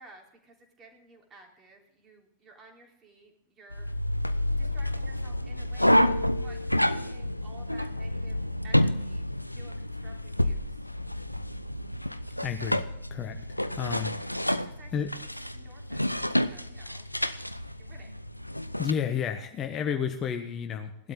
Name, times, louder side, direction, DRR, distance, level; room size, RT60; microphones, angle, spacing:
voice 1, 0.0-3.9 4.6-6.1 6.4-10.8 14.3-16.0 16.5-17.1 17.8-18.1, right 3 dB, 25° right, 1 dB, 3.7 m, -54 dB
sound 1, 3.7-18.9, left 1 dB, 90° left, 0.5 m, -29 dB
voice 2, 12.4-12.8 13.1-13.4 13.7-14.2 14.9-15.1 18.8-21.1, left 8 dB, 30° left, 6 dB, 1.2 m, -31 dB
18.0 x 12.0 x 3.8 m, 0.73 s
figure-of-eight pair, 90°, 0 cm